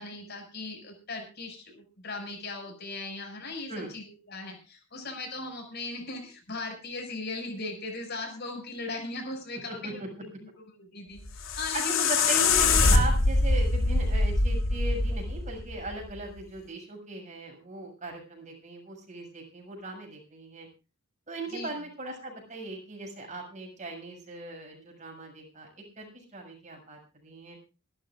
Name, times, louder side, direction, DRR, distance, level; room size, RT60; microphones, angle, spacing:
voice 1, 0.0-12.5 12.8-13.0 21.5-21.7, left 3 dB, 55° left, 3 dB, 6.3 m, -39 dB
voice 2, 9.7-10.1 11.7-20.7 21.3-27.6, right 2 dB, 40° right, 2 dB, 6.7 m, -38 dB
sound 1, 11.2-16.3, left 3 dB, 85° left, 1.9 m, -24 dB
26.5 x 12.5 x 2.5 m, 0.32 s
head